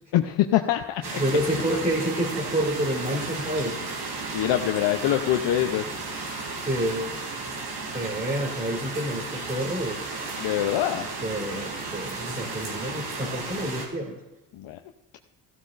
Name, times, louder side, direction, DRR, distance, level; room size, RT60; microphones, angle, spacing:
voice 1, 0.1-1.2 4.3-5.9 10.4-11.1 14.5-14.8, left 12 dB, 70° left, 5 dB, 0.7 m, -24 dB
sound 1, 1.0-13.9, right 3 dB, 65° right, 3.0 m, -34 dB
voice 2, 1.2-3.8 6.6-7.1 7.9-10.0 11.2-14.2, right 1 dB, 15° right, -4 dB, 2.7 m, -28 dB
14.5 x 12.5 x 2.5 m, 1.0 s
cardioid pair, 90°, 46 cm